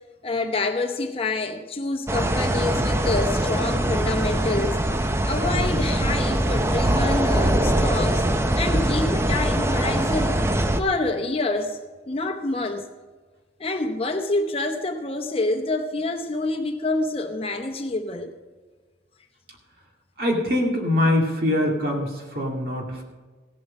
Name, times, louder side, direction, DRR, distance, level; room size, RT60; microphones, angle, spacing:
voice 1, 0.2-4.8 5.2-8.2 8.6-10.4 10.8-11.8 12.1-12.9 13.6-18.3, left 2 dB, 30° left, 5 dB, 0.8 m, -27 dB
sound 1, 2.1-10.8, right 1 dB, 15° right, 0.5 m, -22 dB
voice 2, 20.2-23.0, left 1 dB, 50° right, 0 dB, 2.3 m, -23 dB
16.0 x 7.8 x 5.3 m, 1.4 s
head